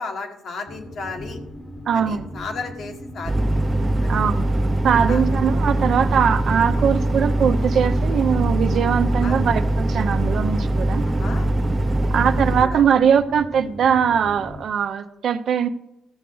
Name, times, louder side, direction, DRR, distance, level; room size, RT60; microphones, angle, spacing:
voice 1, 0.0-1.4 1.9-3.5 4.0-4.1 5.1-5.2 9.2-9.4 11.1-11.5 12.6-12.8, left 4 dB, 65° left, 3 dB, 1.7 m, -34 dB
sound 1, 0.7-14.6, left 1 dB, 25° left, 1.1 m, -37 dB
voice 2, 1.9-2.3 4.1-4.5 4.8-11.1 12.1-15.7, right 7 dB, 65° right, 9 dB, 0.8 m, -21 dB
sound 2, 3.2-12.6, right 1 dB, 25° right, 0.7 m, -22 dB
14.0 x 6.5 x 4.0 m, 0.88 s
supercardioid pair, 65°, 0 cm